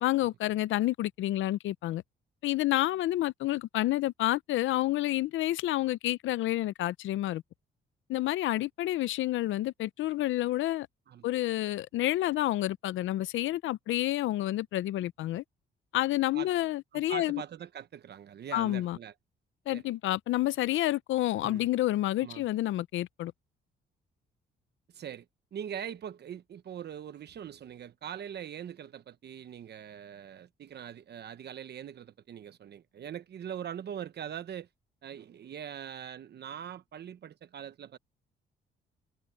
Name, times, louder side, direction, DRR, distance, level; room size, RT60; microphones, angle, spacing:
voice 1, 0.0-2.0 2.4-7.4 8.1-10.9 11.2-15.4 15.9-17.4 18.5-19.0 19.7-23.3, left 15 dB, 75° left, 0.5 m, -29 dB
voice 2, 16.9-19.1 19.7-19.8 21.4-21.7 22.2-22.4 24.9-25.2 25.5-34.7 35.0-38.0, right 9 dB, 55° right, 1.0 m, -42 dB
cardioid pair, 90°, 20 cm